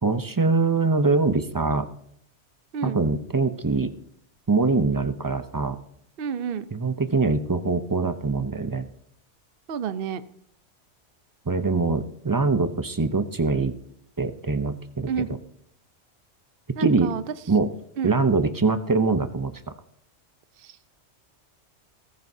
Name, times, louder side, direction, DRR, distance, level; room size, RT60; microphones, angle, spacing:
voice 1, 0.0-1.9 2.8-3.9 4.5-5.8 6.7-8.9 11.5-13.7 14.2-15.3 16.8-17.1 17.5-17.7 18.0-19.5, right 3 dB, 30° right, 10 dB, 0.4 m, -23 dB
voice 2, 6.2-6.6 9.7-10.2 15.1-15.3 16.8-17.2 18.0-18.1 20.6-20.8, right 7 dB, 55° right, 12 dB, 0.8 m, -29 dB
20.0 x 14.0 x 2.7 m, 0.70 s
omnidirectional pair, 1.2 m